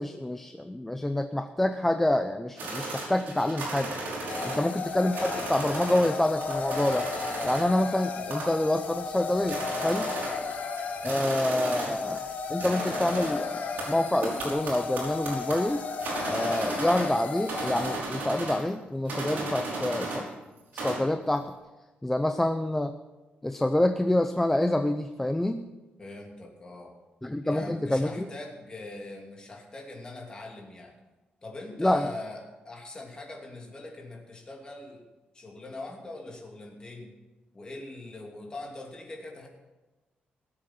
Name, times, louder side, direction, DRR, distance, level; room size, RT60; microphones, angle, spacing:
voice 1, 0.0-4.0 4.4-7.1 7.4-10.1 11.0-15.9 16.3-20.2 20.7-21.5 22.0-22.9 23.4-25.6 27.2-28.3 31.8-32.1, left 1 dB, 10° left, 8 dB, 0.5 m, -27 dB
sound 1, 2.6-6.1 6.4-7.8 8.3-8.7 9.1-9.2 9.4-12.3 12.6-17.2 17.5-18.7 19.1-20.3 20.6-21.1, right 2 dB, 65° right, 5.4 m, -35 dB
sound 2, 4.3-18.0, left 5 dB, 50° left, 1.4 m, -34 dB
voice 2, 26.0-26.9 27.4-30.9 31.4-35.0 35.3-37.1 37.5-39.5, left 2 dB, 25° left, 0 dB, 2.6 m, -42 dB
18.5 x 7.8 x 6.0 m, 1.1 s
wide cardioid pair, 150°, 3 cm